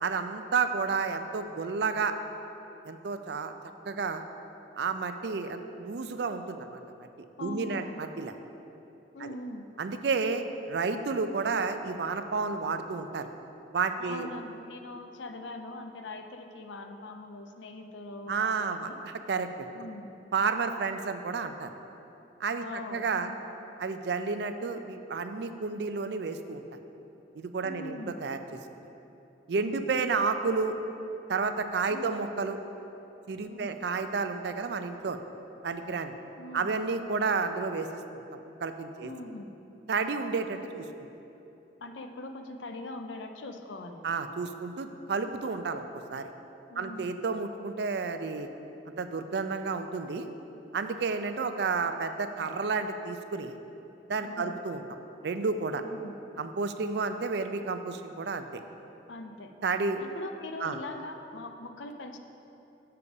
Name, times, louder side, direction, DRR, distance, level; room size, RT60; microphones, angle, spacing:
voice 1, 0.0-2.2 2.8-3.5 3.9-4.2 4.8-6.8 7.4-8.3 9.2-9.3 9.8-13.3 13.7-14.3 18.3-19.5 19.8-19.9 20.3-21.7 22.4-23.3 23.8-26.6 27.4-28.4 29.5-30.7 31.3-32.6 33.3-35.2 35.6-36.2 36.5-37.9 38.3-39.1 39.9-40.8 44.0-46.3 46.8-48.5 49.0-50.3 50.7-53.6 54.1-54.8 55.2-55.8 56.4-58.6 59.6-60.0 60.6-60.8, right 4 dB, 60° right, 8 dB, 0.4 m, -31 dB
voice 2, 7.4-7.9 9.1-9.7 14.0-19.0 19.7-20.1 22.6-23.3 27.6-28.2 29.6-29.9 31.9-32.1 33.5-33.8 36.4-36.7 39.0-39.5 41.8-44.0 46.7-47.1 54.2-54.5 55.7-56.2 59.1-59.5 60.0-62.2, left 2 dB, 80° left, 6 dB, 0.6 m, -42 dB
6.8 x 4.9 x 6.9 m, 3.0 s
head